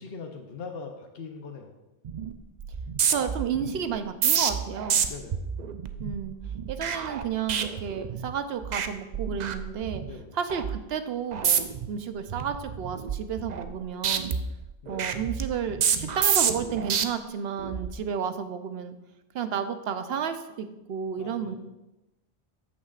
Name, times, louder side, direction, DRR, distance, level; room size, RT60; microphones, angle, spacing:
voice 1, 0.0-1.8 5.0-5.5 10.0-10.4 14.8-15.1 21.2-21.6, left 4 dB, 70° left, 3 dB, 1.0 m, -41 dB
sound 1, 2.0-2.3 2.6-8.3 8.6-8.9 9.1-10.1 10.5-10.8 11.3-11.9 12.3-13.8 14.0-17.0 17.6-17.9, right 7 dB, 55° right, 0.6 m, -28 dB
voice 2, 3.1-5.1 6.0-6.3 6.7-10.0 10.3-14.3 14.9-19.0 19.3-21.6, right 7 dB, 80° right, 9 dB, 0.9 m, -32 dB
13.5 x 6.1 x 2.4 m, 0.96 s
omnidirectional pair, 1.0 m